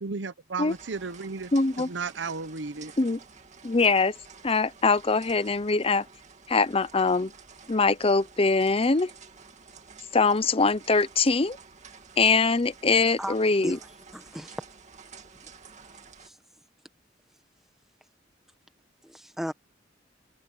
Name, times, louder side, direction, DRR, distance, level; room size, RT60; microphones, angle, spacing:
voice 1, 0.0-1.5 1.8-2.9, right 4 dB, 65° right, 0.9 m, -34 dB
sound 1, 0.7-16.3, right 5 dB, 40° right, 2.3 m, -50 dB
voice 2, 1.5-1.9 3.0-3.2 3.6-4.1 4.4-6.1 6.5-7.3 7.7-9.1 10.1-11.6 12.2-13.8, left 4 dB, 30° left, 0.7 m, -23 dB
voice 3, 14.1-14.6 16.2-16.3 19.0-19.5, equal, ahead, 1.4 m, -35 dB
head